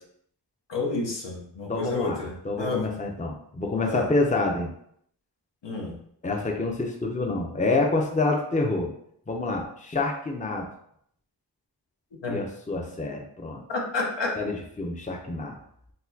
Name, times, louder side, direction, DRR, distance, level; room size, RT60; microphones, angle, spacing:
voice 1, 0.7-2.9 3.8-4.1 5.6-6.0 12.2-12.4 13.7-14.4, left 3 dB, 80° left, -1 dB, 0.8 m, -30 dB
voice 2, 1.7-4.7 6.2-8.9 9.3-10.7 12.3-13.6 14.4-15.5, left 3 dB, 20° left, 2 dB, 0.5 m, -27 dB
4.0 x 2.2 x 2.7 m, 0.69 s
wide cardioid pair, 45°, 42 cm